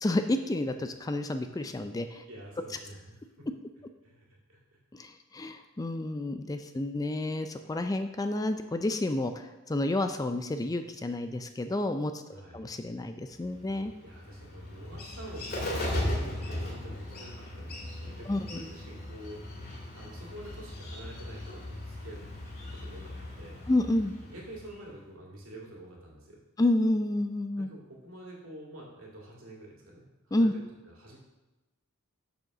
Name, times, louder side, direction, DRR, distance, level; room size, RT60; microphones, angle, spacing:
voice 1, 0.0-2.2 4.9-13.9 18.3-18.6 23.7-24.1 26.6-27.7 30.3-30.5, left 1 dB, 15° left, 8 dB, 0.4 m, -30 dB
voice 2, 2.3-3.5 4.0-4.6 12.3-12.6 14.0-19.6 19.9-22.2 22.6-23.6 24.2-26.4 27.6-31.2, right 1 dB, 70° right, -3 dB, 2.5 m, -47 dB
Bird, 13.4-24.9, left 1 dB, 45° left, 2.1 m, -38 dB
6.6 x 6.3 x 6.0 m, 1.1 s
head